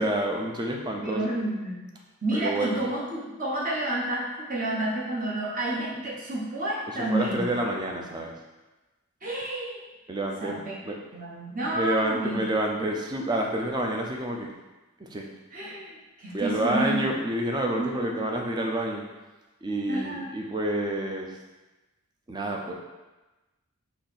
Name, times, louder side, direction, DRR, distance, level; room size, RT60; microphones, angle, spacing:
voice 1, 0.0-1.3 2.3-2.8 6.9-8.3 10.1-11.0 11.7-14.5 15.0-15.3 16.3-19.0 19.6-21.4 22.3-22.7, right 1 dB, 20° right, 1 dB, 0.4 m, -28 dB
voice 2, 1.0-1.9 2.2-7.5 9.2-9.8 10.4-10.8 11.1-12.4 15.5-15.9 16.2-17.0 17.8-18.3 19.9-20.3, right 1 dB, 40° right, -5 dB, 1.0 m, -30 dB
4.0 x 2.8 x 4.0 m, 1.1 s
head